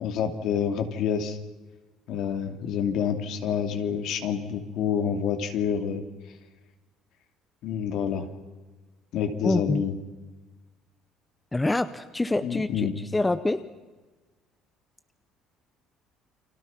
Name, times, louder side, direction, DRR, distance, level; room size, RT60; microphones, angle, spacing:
voice 1, 0.0-1.4 2.1-6.0 7.6-8.3 9.1-10.0 12.4-12.9, left 7 dB, 60° left, 7 dB, 2.7 m, -28 dB
voice 2, 9.4-9.8 11.5-13.6, left 2 dB, 10° left, 12 dB, 0.7 m, -26 dB
30.0 x 24.5 x 5.9 m, 1.3 s
cardioid pair, 160°, 0 cm